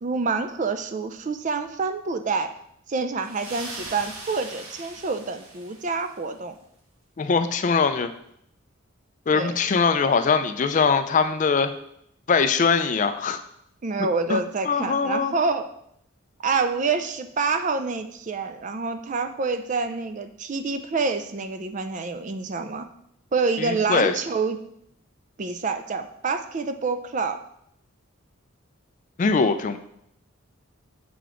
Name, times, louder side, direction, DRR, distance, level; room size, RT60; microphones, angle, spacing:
voice 1, 0.0-2.5 2.9-6.5 9.3-9.5 13.8-15.7 16.4-22.9 23.3-24.6 25.4-27.4, right 4 dB, 35° right, 9 dB, 0.4 m, -27 dB
sound 1, 3.2-6.3, right 2 dB, 85° right, 1.4 m, -40 dB
voice 2, 7.2-8.1 9.3-11.7 12.3-13.4 14.0-14.4 14.7-15.3 23.6-24.1 29.2-29.8, left 5 dB, 35° left, 9 dB, 0.3 m, -22 dB
6.8 x 5.1 x 3.7 m, 0.73 s
head